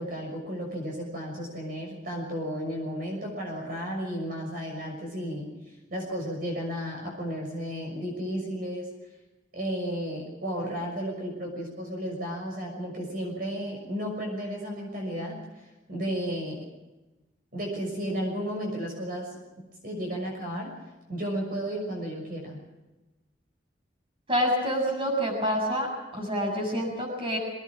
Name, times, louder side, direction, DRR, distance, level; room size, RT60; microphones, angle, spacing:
voice 1, 0.0-5.6 5.9-8.9 9.5-16.6 17.5-19.4 19.8-20.7 21.1-22.6, equal, 50° right, 0 dB, 6.3 m, -33 dB
voice 2, 24.3-27.4, equal, 30° right, 1 dB, 7.1 m, -27 dB
24.5 x 19.0 x 6.2 m, 1.1 s
head